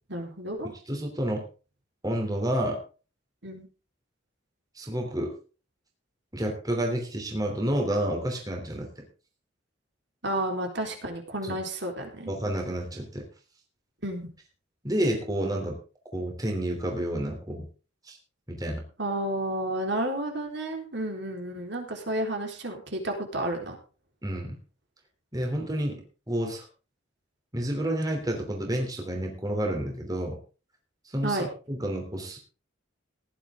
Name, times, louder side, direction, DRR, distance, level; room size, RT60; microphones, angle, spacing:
voice 1, 0.1-0.7 3.4-3.7 10.2-12.3 14.0-14.3 19.0-23.8 31.2-31.5, right 1 dB, 55° right, 3 dB, 4.0 m, -31 dB
voice 2, 0.9-1.4 2.0-2.8 4.7-5.3 6.3-9.0 11.4-11.6 12.3-13.3 14.8-15.8 16.1-17.7 18.0-18.2 18.5-18.8 24.2-24.6 25.3-26.0 26.3-26.7 27.5-30.4 31.0-32.4, right 1 dB, 20° right, 2 dB, 3.1 m, -29 dB
17.5 x 11.0 x 3.7 m, 0.35 s
head